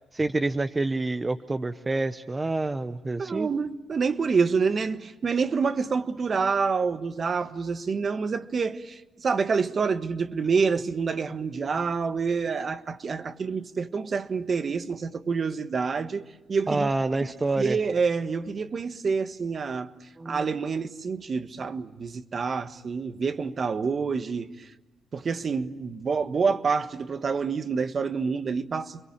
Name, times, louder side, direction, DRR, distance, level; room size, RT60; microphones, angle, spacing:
voice 1, 0.1-3.5 16.7-17.8 20.2-20.5, right 2 dB, 20° right, 0.9 m, -27 dB
voice 2, 3.2-16.2 16.5-16.9 17.6-19.9 20.2-24.7 25.1-29.0, right 5 dB, 45° right, 1.4 m, -27 dB
30.0 x 22.5 x 8.8 m
cardioid pair, 90°, 0 cm